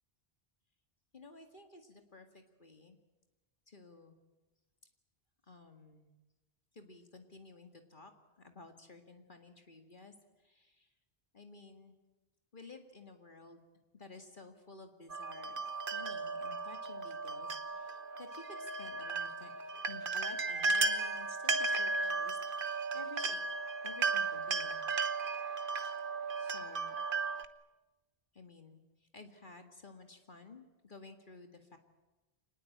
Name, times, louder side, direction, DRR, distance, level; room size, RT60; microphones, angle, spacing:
voice 1, 1.1-3.0 3.7-4.2 5.5-6.1 6.7-8.1 8.4-10.9 11.3-12.0 12.5-13.6 13.9-19.5 19.9-23.4 23.8-24.8 26.4-27.0 28.3-31.8, left 3 dB, 55° left, 5 dB, 2.2 m, -54 dB
sound 1, 15.1-27.5, right 3 dB, 60° right, 1.2 m, -35 dB
26.0 x 19.5 x 8.7 m, 1.1 s
omnidirectional pair, 1.0 m